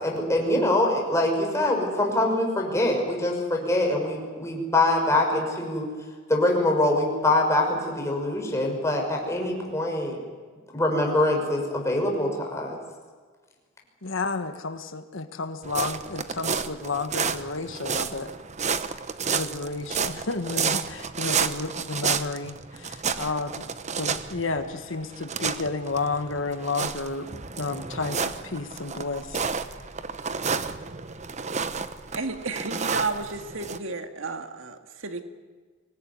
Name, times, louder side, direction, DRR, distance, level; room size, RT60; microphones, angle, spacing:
voice 1, 0.0-5.9 6.3-10.2 10.7-12.8, left 1 dB, 15° left, 1 dB, 6.1 m, -24 dB
voice 2, 14.0-18.3 19.3-23.7 23.9-29.5, left 3 dB, 70° left, 8 dB, 1.5 m, -31 dB
sound 1, 15.6-33.8, right 6 dB, 35° right, 1.0 m, -31 dB
voice 3, 32.1-35.2, right 3 dB, 75° right, 6 dB, 2.0 m, -32 dB
25.0 x 19.5 x 9.6 m, 1.5 s
head